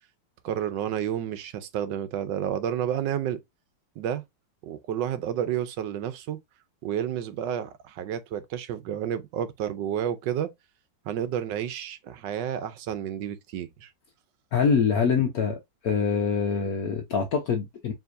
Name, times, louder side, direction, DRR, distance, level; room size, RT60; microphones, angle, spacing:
voice 1, 0.4-3.4 4.0-4.2 4.6-6.4 6.8-10.5 11.0-13.9, right 10 dB, 75° right, 1.3 m, -30 dB
voice 2, 14.5-15.6 15.8-17.9, left 6 dB, 65° left, 1.1 m, -24 dB
4.8 x 3.5 x 2.6 m
omnidirectional pair, 2.0 m